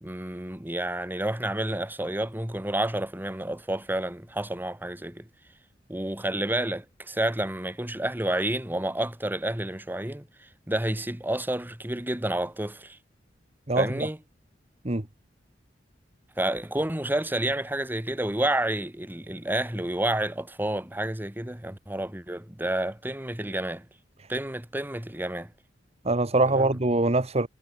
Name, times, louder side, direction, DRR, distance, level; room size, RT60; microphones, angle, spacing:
voice 1, 0.0-5.3 5.9-13.0 13.8-14.2 16.4-23.9 24.3-25.5 26.5-26.7, right 1 dB, 10° right, 1.5 m, -30 dB
voice 2, 13.7-14.1 14.8-15.1 26.0-27.5, right 2 dB, 35° right, 1.6 m, -23 dB
head